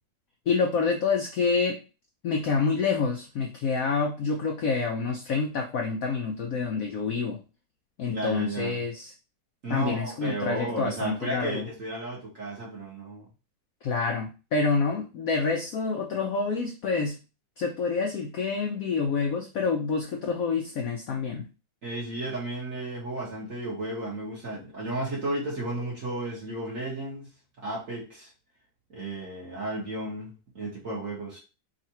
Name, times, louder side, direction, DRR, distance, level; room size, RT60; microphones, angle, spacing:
voice 1, 0.5-1.8 2.2-7.4 8.0-9.1 9.7-11.6 13.8-17.2 17.6-21.5, left 4 dB, 80° left, 0.7 m, -27 dB
voice 2, 8.1-8.8 9.6-13.3 21.8-28.3 28.9-31.4, right 2 dB, 50° right, 1.4 m, -33 dB
3.6 x 2.5 x 4.3 m
omnidirectional pair, 2.1 m